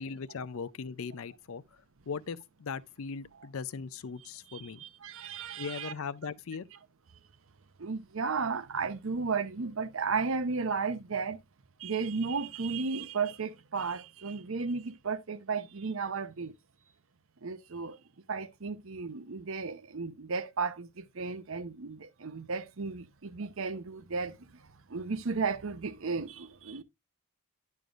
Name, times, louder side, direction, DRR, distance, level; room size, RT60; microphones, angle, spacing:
voice 1, 0.0-4.8 5.6-6.7, left 5 dB, 65° left, 0.5 m, -39 dB
voice 2, 4.5-5.9 7.8-11.4 11.8-16.5 17.4-18.0 18.3-26.8, right 4 dB, 65° right, 0.7 m, -34 dB
10.5 x 6.6 x 2.4 m
head